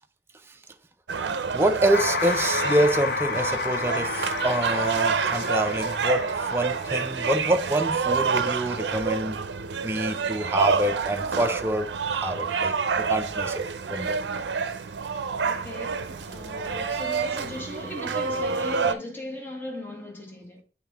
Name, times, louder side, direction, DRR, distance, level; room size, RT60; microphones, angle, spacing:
sound 1, 1.1-19.0, right 5 dB, 80° right, 0.5 m, -28 dB
voice 1, 1.5-9.4 9.8-13.6 13.9-14.2, right 1 dB, 15° right, 0.4 m, -26 dB
sound 2, 1.9-7.2, left 4 dB, 55° left, 0.6 m, -31 dB
voice 2, 15.4-20.6, left 1 dB, 10° left, 1.2 m, -38 dB
7.7 x 3.6 x 3.4 m
head